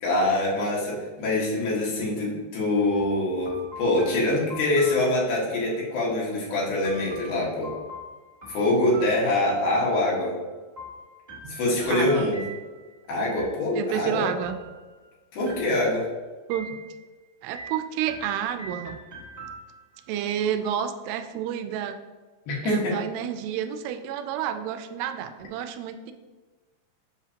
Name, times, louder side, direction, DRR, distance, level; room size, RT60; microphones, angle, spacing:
voice 1, 0.0-7.7 8.5-10.4 11.5-12.4 13.1-14.3 15.3-16.1 22.5-23.0, left 2 dB, 70° left, -5 dB, 3.4 m, -24 dB
sound 1, 2.9-5.7 6.8-9.8 10.8-12.9 13.4-14.0 14.4-15.1 15.4-16.1 16.5-17.1 17.5-20.0, right 1 dB, 35° right, 0.6 m, -43 dB
voice 2, 11.9-12.3 13.7-14.6 16.5-16.8 17.4-19.0 20.1-22.0 22.6-26.1, right 9 dB, 85° right, 8 dB, 2.5 m, -30 dB
7.9 x 6.0 x 2.8 m, 1.3 s
omnidirectional pair, 4.6 m